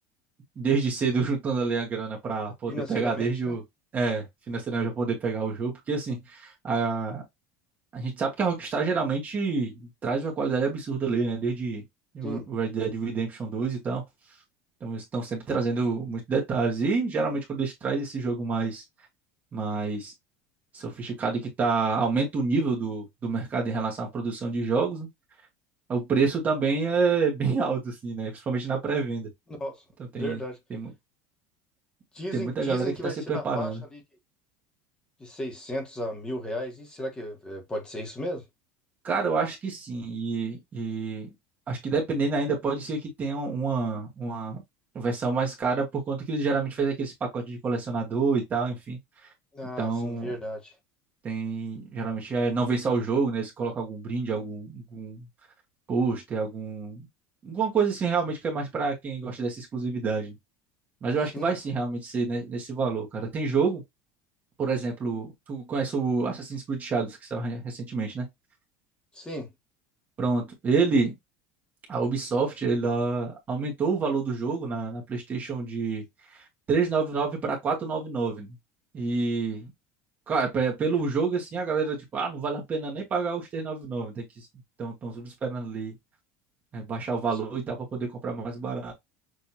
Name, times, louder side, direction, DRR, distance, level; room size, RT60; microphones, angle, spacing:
voice 1, 0.6-3.6 3.9-7.2 7.9-11.8 12.1-14.0 14.8-18.8 19.5-20.1 20.7-25.1 25.9-29.3 30.1-30.4 30.7-30.9 32.3-32.9 33.3-33.8 39.0-41.3 41.7-44.6 44.9-49.0 49.8-50.3 51.2-55.2 55.9-57.1 57.4-60.3 61.0-63.8 64.6-68.3 70.2-71.1 71.9-76.0 76.3-76.4 76.7-78.5 78.9-79.7 80.3-84.5 84.8-85.9 86.7-88.9, right 4 dB, 20° right, 1.2 m, -28 dB
voice 2, 2.7-3.6 12.2-12.4 29.6-29.8 30.1-30.6 32.1-34.0 35.2-38.4 49.5-50.7 61.3-61.5 69.1-69.5 87.3-87.4, equal, 10° left, 1.2 m, -35 dB
6.4 x 2.6 x 2.8 m
cardioid pair, 165°, 8 cm